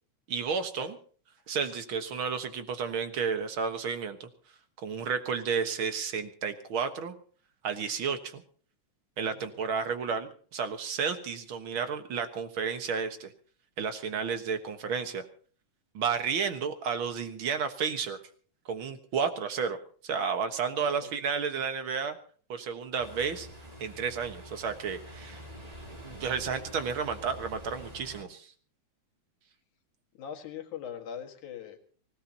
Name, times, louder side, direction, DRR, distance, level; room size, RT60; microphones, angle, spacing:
voice 1, 0.3-1.0 1.5-4.3 4.8-7.1 7.6-8.4 9.2-13.3 13.8-15.3 15.9-18.2 18.7-19.8 20.0-22.2 22.5-23.5 23.8-25.4 26.0-28.5, right 6 dB, 50° right, 8 dB, 1.8 m, -32 dB
voice 2, 20.8-21.1 30.2-32.0, left 8 dB, 85° left, 4 dB, 3.2 m, -42 dB
Ocean, 23.0-28.2, equal, 15° right, 2.0 m, -46 dB
25.0 x 17.5 x 2.9 m, 0.43 s
omnidirectional pair, 3.4 m